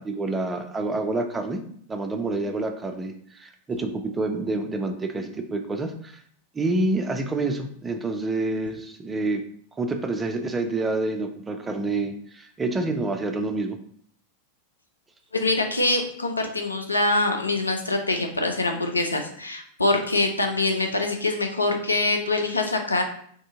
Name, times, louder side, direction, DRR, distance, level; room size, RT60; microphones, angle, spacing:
voice 1, 0.0-1.6 1.9-6.2 6.5-9.4 9.8-13.8, right 2 dB, 15° right, 6 dB, 0.4 m, -28 dB
voice 2, 15.3-23.0, left 2 dB, 80° left, 4 dB, 0.4 m, -24 dB
2.7 x 2.6 x 3.5 m, 0.62 s
figure-of-eight pair, 90°, 0 cm